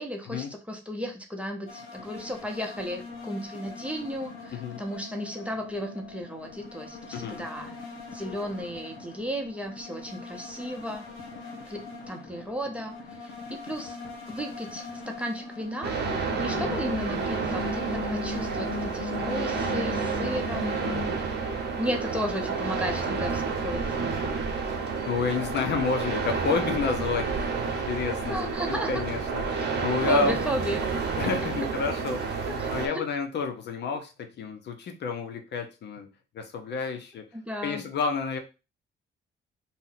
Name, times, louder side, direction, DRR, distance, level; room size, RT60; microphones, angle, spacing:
voice 1, 0.0-7.7 8.1-11.1 11.7-12.9 13.2-14.0 14.3-16.0 16.4-20.8 21.8-24.1 28.3-28.9 30.1-30.8 32.5-33.0 37.3-37.8, equal, 5° right, 2 dB, 0.7 m, -34 dB
sound 1, 1.7-21.1, left 4 dB, 80° left, 0.9 m, -40 dB
voice 2, 7.1-7.5 16.7-17.0 24.2-24.4 25.0-30.4 31.2-36.1 36.3-37.3 37.6-38.4, left 5 dB, 60° left, 6 dB, 0.6 m, -30 dB
sound 2, 15.8-32.9, right 5 dB, 55° right, 0.8 m, -30 dB
2.6 x 2.1 x 3.9 m, 0.30 s
cardioid pair, 90°, 20 cm